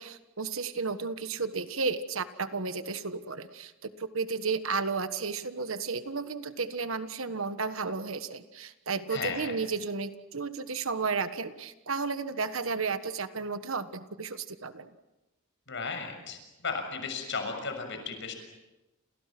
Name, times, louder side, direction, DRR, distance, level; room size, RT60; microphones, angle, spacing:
voice 1, 0.0-14.9, right 4 dB, 70° right, 10 dB, 1.5 m, -33 dB
voice 2, 9.1-9.5 15.7-18.3, left 4 dB, 60° left, 6 dB, 6.7 m, -35 dB
30.0 x 28.5 x 6.1 m, 1.0 s
head